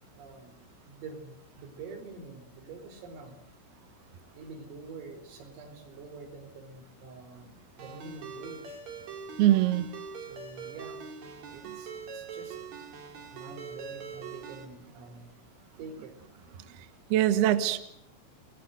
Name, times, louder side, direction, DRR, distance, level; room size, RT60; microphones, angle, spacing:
voice 1, 0.1-0.6 0.9-3.4 4.4-8.8 10.2-11.0 11.5-12.6 13.3-15.5 15.8-16.2, right 4 dB, 90° right, 5 dB, 7.2 m, -46 dB
Ringtone, 7.8-14.7, right 6 dB, 40° right, 3.4 m, -43 dB
voice 2, 9.4-9.9 17.1-17.8, right 13 dB, 65° right, 11 dB, 2.8 m, -22 dB
29.5 x 21.0 x 8.0 m, 0.72 s
omnidirectional pair, 5.8 m